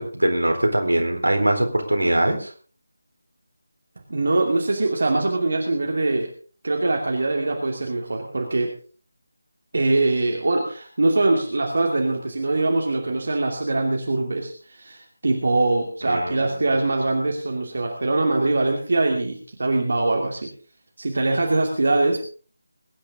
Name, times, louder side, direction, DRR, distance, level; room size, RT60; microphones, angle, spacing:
voice 1, 0.0-2.5 16.0-16.5, right 1 dB, 75° right, 3 dB, 4.1 m, -22 dB
voice 2, 4.1-6.3 6.6-8.7 9.7-20.5 21.0-22.3, right 2 dB, 55° right, 1 dB, 2.7 m, -23 dB
23.0 x 10.5 x 3.8 m, 0.41 s
figure-of-eight pair, 160°, 0 cm